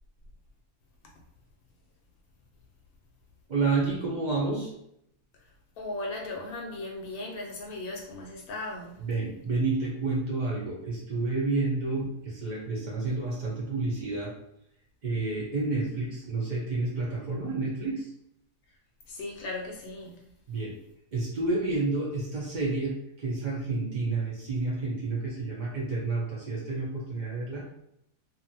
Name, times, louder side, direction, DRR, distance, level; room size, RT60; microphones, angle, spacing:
voice 1, 3.5-4.7 9.0-14.3 15.0-18.1 20.5-20.7 21.1-27.7, right 3 dB, 85° right, -4 dB, 0.4 m, -30 dB
voice 2, 5.8-9.0 19.1-20.2, left 2 dB, 75° left, 0 dB, 1.0 m, -37 dB
2.7 x 2.6 x 2.7 m, 0.77 s
omnidirectional pair, 1.7 m